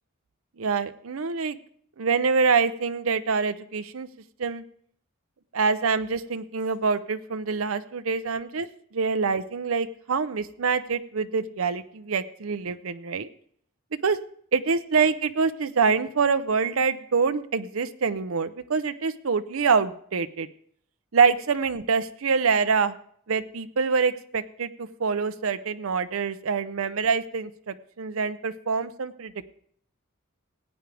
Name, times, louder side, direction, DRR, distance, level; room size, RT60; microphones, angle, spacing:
voice 1, 0.6-1.6 2.0-4.1 4.4-4.6 5.5-8.7 8.9-13.3 14.0-14.2 14.5-20.5 21.1-22.9 23.3-29.3, right 5 dB, 80° right, 11 dB, 0.6 m, -25 dB
17.0 x 9.1 x 3.4 m, 0.62 s
head